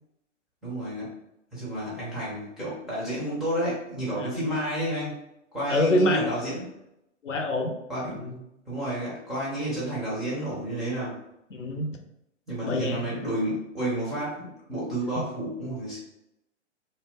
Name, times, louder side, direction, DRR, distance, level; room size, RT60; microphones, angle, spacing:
voice 1, 0.6-1.1 1.5-5.2 5.5-6.7 7.9-8.2 8.7-11.2 12.5-16.0, right 1 dB, ahead, -9 dB, 0.4 m, -31 dB
voice 2, 5.7-6.3 7.2-7.8 8.1-8.4 11.5-12.0 12.6-13.1 15.1-15.3, left 1 dB, 85° left, 4 dB, 0.6 m, -26 dB
2.4 x 2.1 x 3.5 m, 0.84 s
figure-of-eight pair, 115°, 36 cm